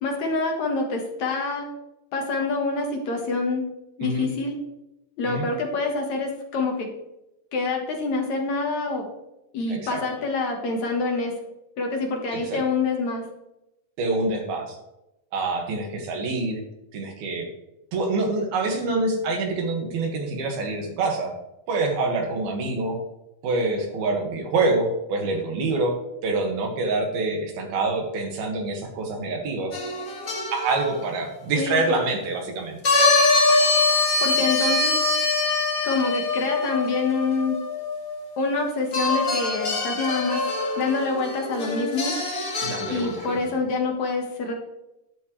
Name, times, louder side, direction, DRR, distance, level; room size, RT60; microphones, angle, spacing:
voice 1, 0.0-1.7 2.1-3.7 4.0-4.6 5.2-6.9 7.5-9.1 9.5-11.3 11.8-13.2 31.6-31.8 34.2-35.0 35.8-37.6 38.4-40.4 40.8-42.2 42.9-44.5, left 3 dB, 55° left, 1 dB, 2.6 m, -26 dB
voice 2, 9.7-10.0 12.3-12.6 14.0-14.8 15.3-16.6 16.9-17.5 17.9-21.3 21.7-23.0 23.4-25.9 26.2-29.7 30.5-32.8 42.6-43.5, right 3 dB, 80° right, 2 dB, 3.8 m, -26 dB
sound 1, 29.7-30.9 32.8-38.6 38.9-43.4, left 3 dB, 40° left, 1.3 m, -24 dB
12.0 x 11.5 x 3.3 m, 0.90 s
omnidirectional pair, 4.2 m